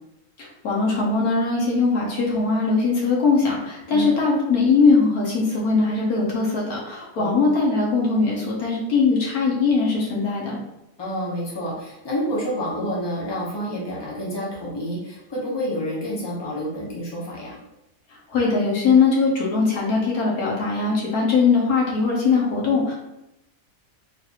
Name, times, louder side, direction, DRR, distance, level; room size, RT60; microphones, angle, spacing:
voice 1, 0.4-10.6 18.3-22.9, left 4 dB, 65° left, -4 dB, 1.2 m, -20 dB
voice 2, 11.0-17.6, equal, 25° left, -5 dB, 0.6 m, -28 dB
4.0 x 2.5 x 2.8 m, 0.90 s
omnidirectional pair, 1.8 m